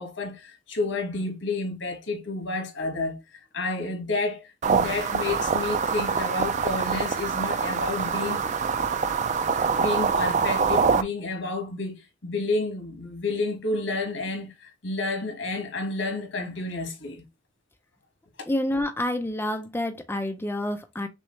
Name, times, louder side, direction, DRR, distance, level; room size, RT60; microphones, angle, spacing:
voice 1, 0.0-3.2 3.5-8.4 8.8-8.9 9.8-17.2 18.4-18.5, left 3 dB, 85° left, 1.6 m, -30 dB
sound 1, 4.6-11.0, right 5 dB, 40° right, 0.4 m, -25 dB
voice 2, 18.5-21.1, left 1 dB, 10° left, 0.5 m, -28 dB
6.1 x 2.5 x 3.1 m
head